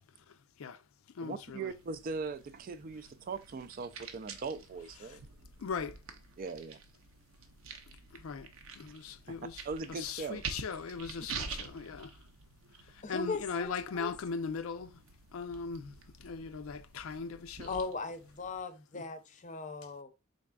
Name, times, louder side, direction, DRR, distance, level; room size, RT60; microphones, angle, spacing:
voice 1, 0.3-0.9 1.1-1.7 5.0-5.2 5.6-6.0 7.9-9.6 9.9-12.3 12.7-15.0 15.3-17.8 18.9-19.1 19.8-19.9, left 5 dB, 80° left, 0.4 m, -40 dB
voice 2, 1.2-5.2 6.4-6.8 9.3-9.4 9.7-10.4, right 4 dB, 40° right, 0.3 m, -40 dB
sound 1, 1.7-18.6, right 5 dB, 80° right, 0.7 m, -48 dB
voice 3, 13.0-13.7 14.0-14.1 17.7-20.1, left 4 dB, 35° left, 0.6 m, -38 dB
4.0 x 3.5 x 2.2 m
head